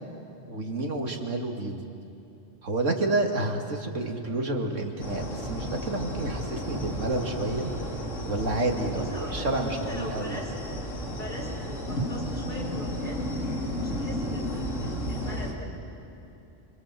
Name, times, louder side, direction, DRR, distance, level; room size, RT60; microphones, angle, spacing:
voice 1, 0.5-1.8 2.6-7.7 8.3-10.4, right 2 dB, 85° right, 2 dB, 2.7 m, -29 dB
sound 1, 5.0-15.5, equal, 85° left, 3.1 m, -33 dB
voice 2, 8.9-10.5 11.1-13.2 13.8-15.7, equal, 40° left, -4 dB, 5.4 m, -41 dB
27.5 x 24.0 x 7.7 m, 2.9 s
omnidirectional pair, 1.2 m